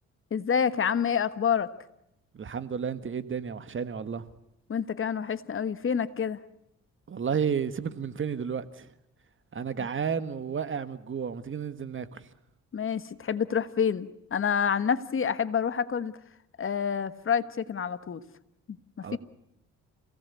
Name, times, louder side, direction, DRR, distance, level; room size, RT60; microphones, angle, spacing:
voice 1, 0.3-1.7 4.7-6.4 12.7-16.1 16.6-18.2 19.0-19.2, left 7 dB, 45° left, 1.4 m, -28 dB
voice 2, 2.3-4.2 7.1-8.9 9.5-12.3 19.0-19.2, right 7 dB, 40° right, 1.7 m, -32 dB
28.0 x 18.0 x 8.5 m
cardioid pair, 90°, 30 cm